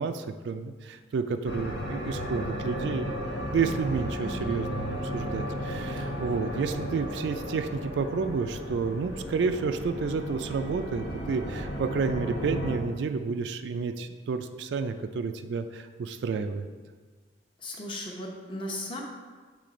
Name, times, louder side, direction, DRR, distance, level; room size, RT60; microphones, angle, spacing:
voice 1, 0.0-3.1 3.5-16.7, right 5 dB, 80° right, 8 dB, 0.3 m, -30 dB
sound 1, 1.4-12.8, equal, 85° left, 1.1 m, -34 dB
voice 2, 17.6-19.0, left 1 dB, 30° left, 0 dB, 0.8 m, -36 dB
6.8 x 3.3 x 4.9 m, 1.5 s
head